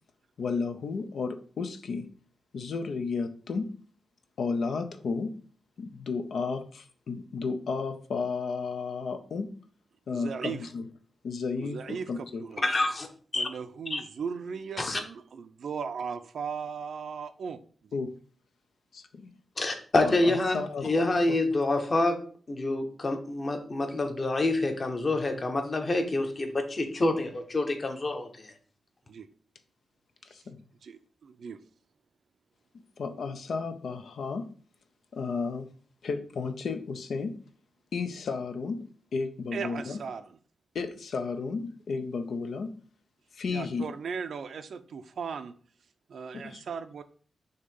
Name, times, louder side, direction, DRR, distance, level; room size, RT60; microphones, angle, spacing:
voice 1, 0.4-2.1 2.5-3.8 4.4-5.4 5.8-9.6 10.1-10.9 11.2-12.4 17.9-18.2 18.9-19.4 20.0-20.9 21.3-21.4 30.2-30.6 33.0-34.5 35.1-35.7 36.0-37.4 37.9-40.0 40.7-42.8 43.3-43.9 46.3-46.6, left 4 dB, 75° left, 0.7 m, -33 dB
voice 2, 10.1-10.6 11.6-12.7 13.3-17.6 29.1-29.3 30.8-31.6 39.5-40.3 43.5-45.5 46.1-47.0, right 6 dB, 75° right, 0.5 m, -37 dB
voice 3, 12.6-13.1 13.3-13.5 13.9-14.0 14.8-15.0 19.6-20.6 20.8-22.2 22.5-28.5, left 2 dB, 40° left, 1.2 m, -27 dB
6.5 x 2.9 x 5.4 m
wide cardioid pair, 105°, 0 cm